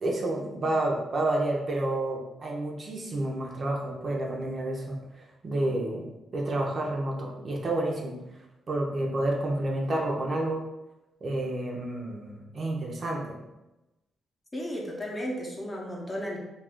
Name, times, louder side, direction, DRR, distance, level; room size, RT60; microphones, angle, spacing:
voice 1, 0.0-5.0 5.4-8.1 8.7-10.6 11.2-13.4, right 1 dB, 50° right, -1 dB, 0.6 m, -29 dB
voice 2, 14.5-16.4, equal, 25° left, -2 dB, 0.7 m, -34 dB
2.4 x 2.3 x 3.4 m, 0.99 s
cardioid pair, 85°, 0 cm